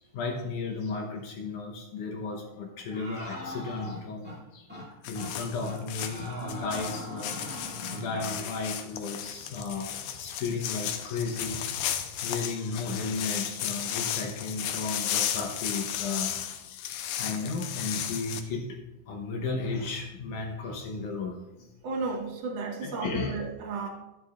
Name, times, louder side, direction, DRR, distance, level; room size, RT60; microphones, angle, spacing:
voice 1, 0.1-7.5 7.9-11.7 12.2-16.4 17.2-21.4 22.8-23.4, left 4 dB, 70° left, 1 dB, 2.0 m, -34 dB
sound 1, 2.9-4.4 4.7-4.9 5.1-5.3 5.6-8.4, left 1 dB, 10° right, 0.5 m, -40 dB
sound 2, 5.0-18.4, left 10 dB, 85° left, 2.7 m, -34 dB
voice 2, 21.8-23.9, right 3 dB, 75° right, 1 dB, 1.4 m, -33 dB
13.0 x 9.9 x 2.4 m, 0.97 s
omnidirectional pair, 4.5 m